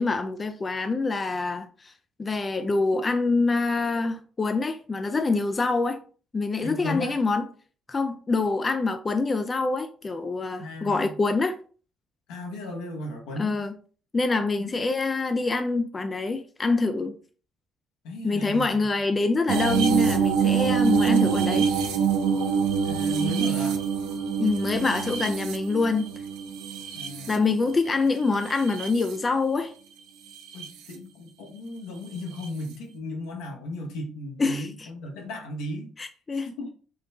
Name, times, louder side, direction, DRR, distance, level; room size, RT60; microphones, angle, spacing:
voice 1, 0.0-1.9 2.2-6.0 6.3-7.4 7.9-11.6 13.4-13.7 14.1-17.2 18.2-21.7 24.4-26.1 27.3-29.7 34.4-34.9 36.0-36.5, left 3 dB, 30° left, 0.3 m, -25 dB
voice 2, 6.6-7.2 10.6-11.2 12.3-13.5 14.6-14.7 18.0-18.7 22.8-23.8 26.9-27.4 30.5-35.9 36.3-36.7, left 2 dB, 80° left, 0.9 m, -35 dB
sound 1, 19.5-27.8 28.4-29.1 30.4-30.7 32.4-32.5, right 7 dB, 80° right, 0.4 m, -25 dB
3.6 x 2.2 x 2.6 m
supercardioid pair, 65°, 0 cm